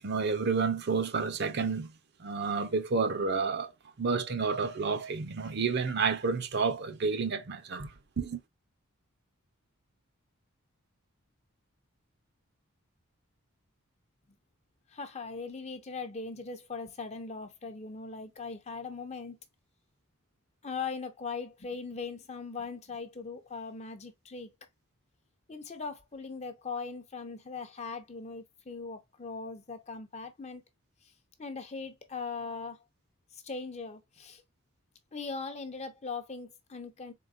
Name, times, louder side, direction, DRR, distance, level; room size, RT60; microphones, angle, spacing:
voice 1, 0.0-1.9 2.2-3.7 4.0-7.9 8.2-8.4, right 4 dB, 50° right, 0.6 m, -30 dB
voice 2, 14.9-19.4 20.6-24.5 25.5-30.6 31.4-32.8 33.3-34.4 35.1-37.1, left 4 dB, 30° left, 0.7 m, -40 dB
4.0 x 3.8 x 2.5 m
head